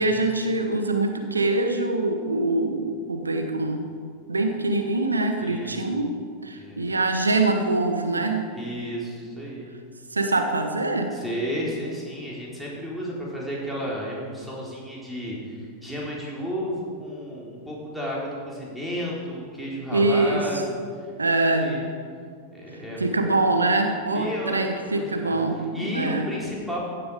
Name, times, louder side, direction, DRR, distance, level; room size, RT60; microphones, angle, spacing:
voice 1, 0.0-3.9 4.3-6.1 6.4-8.5 10.1-11.2 19.9-20.5 21.2-21.7 23.0-26.2, right 2 dB, 80° right, 5 dB, 1.0 m, -24 dB
voice 2, 5.4-6.0 6.5-6.8 8.5-9.7 11.1-21.1 21.5-21.9 22.5-23.2 24.1-25.4 25.7-26.8, equal, ahead, -5 dB, 4.2 m, -32 dB
15.5 x 11.0 x 5.0 m, 2.2 s
figure-of-eight pair, 90°, 0 cm